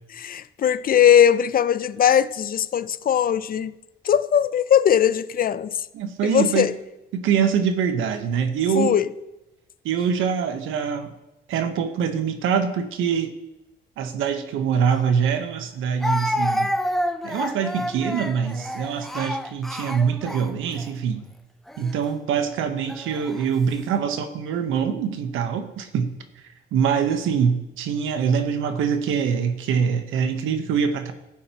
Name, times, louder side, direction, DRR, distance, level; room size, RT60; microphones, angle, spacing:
voice 1, 0.1-3.7 4.0-5.8 6.2-6.7 8.7-9.0, left 9 dB, 45° left, 0.5 m, -19 dB
voice 2, 5.9-6.7 7.1-9.0 9.8-11.1 11.5-13.3 14.0-16.8 17.2-21.3 21.8-26.1 26.7-31.1, right 7 dB, 85° right, 1.0 m, -24 dB
Speech, 14.9-15.0 16.0-20.9 21.7-21.9 22.9-23.5, left 1 dB, ahead, 0.6 m, -29 dB
15.0 x 8.6 x 2.9 m
cardioid pair, 90°, 20 cm